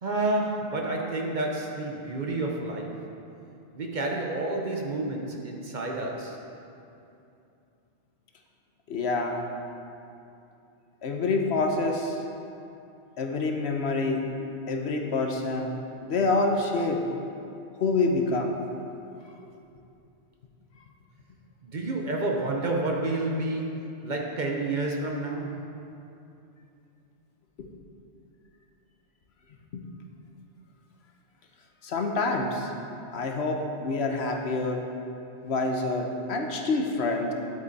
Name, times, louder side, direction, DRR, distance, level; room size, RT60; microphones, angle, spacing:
voice 1, 0.0-3.1 3.7-6.4 21.6-25.7, right 2 dB, 45° right, 0 dB, 0.9 m, -30 dB
voice 2, 8.9-9.4 11.0-12.2 13.2-14.2 14.7-17.0 17.8-18.6 27.6-27.7 29.7-29.8 31.8-32.7 33.1-34.8 35.4-37.3, left 3 dB, 65° left, 3 dB, 1.1 m, -27 dB
10.5 x 8.0 x 4.1 m, 2.7 s
omnidirectional pair, 1.2 m